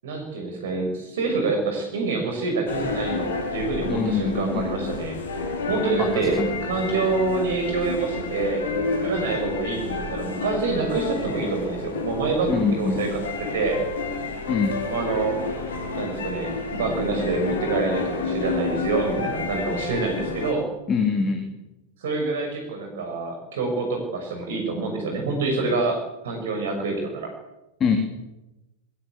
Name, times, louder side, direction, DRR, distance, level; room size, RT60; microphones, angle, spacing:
voice 1, 0.0-5.1 5.7-6.4 6.7-8.6 9.0-13.1 13.5-13.8 14.9-15.4 15.9-20.6 22.0-27.2, right 3 dB, 60° right, 3 dB, 6.7 m, -26 dB
sound 1, 2.7-20.5, left 3 dB, 65° left, 5.1 m, -30 dB
voice 2, 3.9-4.6 6.0-6.5 12.5-13.1 14.5-14.8 20.9-21.4 27.8-28.0, left 5 dB, 25° left, 4 dB, 3.4 m, -24 dB
22.0 x 21.5 x 8.4 m, 0.98 s
figure-of-eight pair, 90°, 0 cm